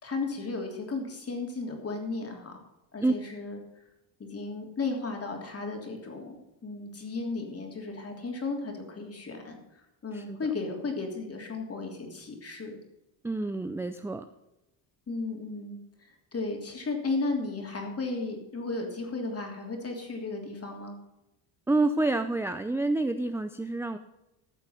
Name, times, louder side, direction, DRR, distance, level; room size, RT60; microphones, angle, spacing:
voice 1, 0.0-2.6 2.9-3.6 4.2-12.8 15.1-21.0, left 3 dB, 30° left, 2 dB, 3.2 m, -35 dB
voice 2, 13.2-14.2 21.7-24.0, right 2 dB, 5° right, 9 dB, 0.4 m, -28 dB
14.0 x 7.5 x 5.7 m, 0.92 s
cardioid pair, 125°, 48 cm